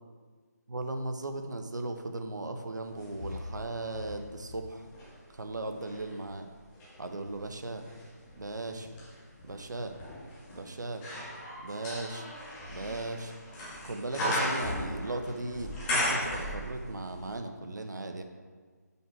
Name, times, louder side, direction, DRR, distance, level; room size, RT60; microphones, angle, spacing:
voice 1, 0.7-4.9 5.3-6.5 7.0-7.9 8.4-8.9 9.4-10.0 10.5-11.1 11.6-12.3 12.7-18.2, right 2 dB, 80° right, 5 dB, 0.9 m, -37 dB
sound 1, 2.9-5.1 5.7-17.0 17.3-17.4, left 1 dB, 5° left, 0.4 m, -36 dB
6.2 x 5.4 x 4.5 m, 1.5 s
figure-of-eight pair, 170°, 10 cm